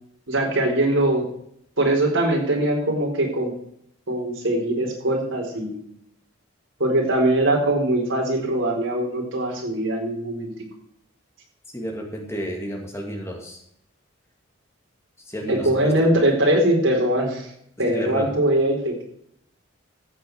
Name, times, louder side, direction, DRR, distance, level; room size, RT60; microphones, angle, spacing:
voice 1, 0.3-1.3 1.8-3.5 4.1-5.8 6.8-10.5 15.5-17.5 17.8-19.1, right 1 dB, 70° right, 0 dB, 4.1 m, -21 dB
voice 2, 11.7-13.6 15.3-16.1 17.8-18.3, equal, 15° left, 0 dB, 2.2 m, -31 dB
14.0 x 8.3 x 4.7 m, 0.70 s
head